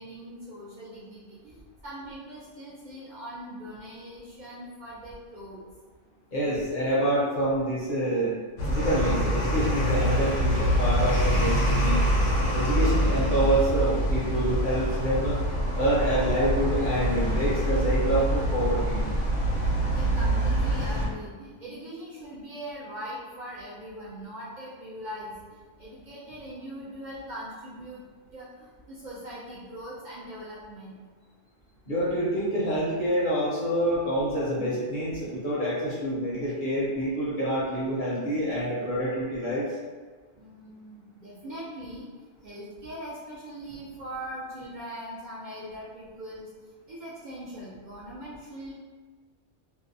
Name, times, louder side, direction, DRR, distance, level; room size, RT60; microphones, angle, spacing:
voice 1, 0.0-1.5 1.8-5.6 19.9-25.3 25.8-28.0 28.3-30.9 40.4-42.1 42.4-46.5 46.9-48.7, equal, 60° right, -7 dB, 0.5 m, -41 dB
voice 2, 6.3-8.3 8.7-12.0 12.5-15.4 15.8-19.0 31.9-39.6, right 1 dB, 50° left, -8 dB, 0.7 m, -27 dB
sound 1, 8.6-21.1, equal, 80° left, 1.0 m, -25 dB
2.6 x 2.1 x 2.6 m, 1.4 s
omnidirectional pair, 1.3 m